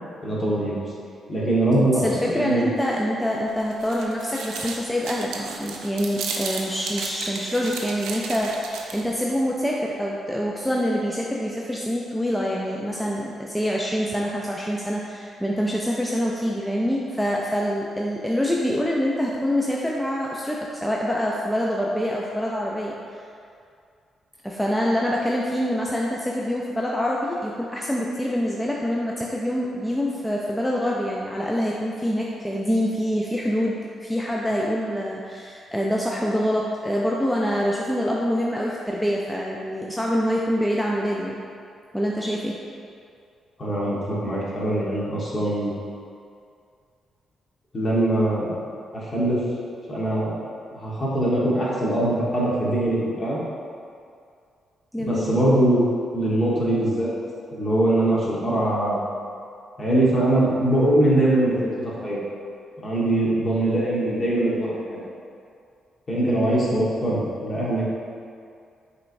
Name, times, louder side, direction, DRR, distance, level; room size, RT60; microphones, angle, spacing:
voice 1, 0.2-0.8 1.3-2.7 43.6-45.7 47.7-48.5 48.9-49.4 49.9-50.3 50.7-53.4 55.0-57.1 57.5-59.0 59.8-62.2 62.8-65.0 66.1-67.8, right 1 dB, 40° left, -6 dB, 1.3 m, -22 dB
voice 2, 1.9-23.0 24.4-41.4 41.9-42.6 54.9-55.3 66.2-66.4, equal, 5° left, -3 dB, 0.4 m, -25 dB
sound 1, 3.5-9.2, right 4 dB, 85° right, 0.4 m, -34 dB
5.4 x 3.1 x 2.6 m, 2.3 s
supercardioid pair, 60°, 0 cm